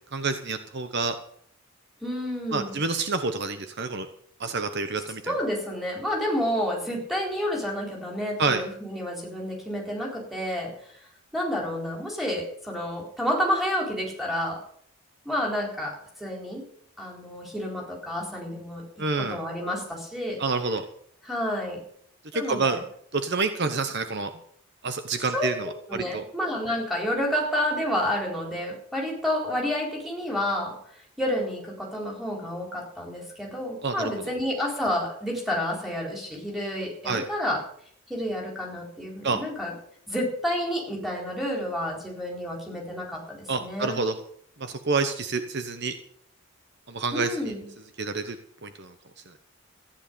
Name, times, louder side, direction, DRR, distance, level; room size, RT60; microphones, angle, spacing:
voice 1, 0.1-1.2 2.5-4.1 4.4-5.3 8.4-8.6 19.0-19.4 20.4-20.8 22.3-22.8 23.1-24.3 24.8-26.2 33.8-34.1 37.0-37.2 39.2-39.4 43.5-44.1 44.6-45.9 46.9-47.3 48.0-48.4 48.6-48.9, right 4 dB, 50° right, 8 dB, 1.0 m, -28 dB
voice 2, 2.0-2.8 5.2-11.0 11.3-14.6 15.2-16.6 17.0-20.4 21.2-21.8 22.3-22.8 25.3-25.5 25.9-30.8 31.2-37.6 38.1-39.8 40.1-44.0 47.1-47.7, equal, ahead, -1 dB, 4.0 m, -30 dB
14.5 x 10.0 x 6.9 m, 0.63 s
head